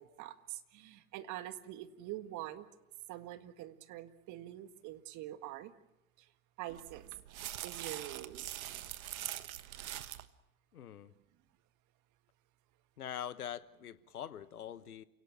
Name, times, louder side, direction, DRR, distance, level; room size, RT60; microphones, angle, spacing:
voice 1, 0.0-2.7 3.1-5.7 6.2-6.3 6.6-7.1 7.6-8.6, right 14 dB, 40° right, 10 dB, 1.9 m, -45 dB
sound 1, 6.7-10.3, right 12 dB, 65° right, 1.4 m, -43 dB
voice 2, 10.7-11.1 13.0-15.0, left 10 dB, 75° left, 15 dB, 1.2 m, -44 dB
29.0 x 18.0 x 7.3 m, 0.95 s
figure-of-eight pair, 85°, 44 cm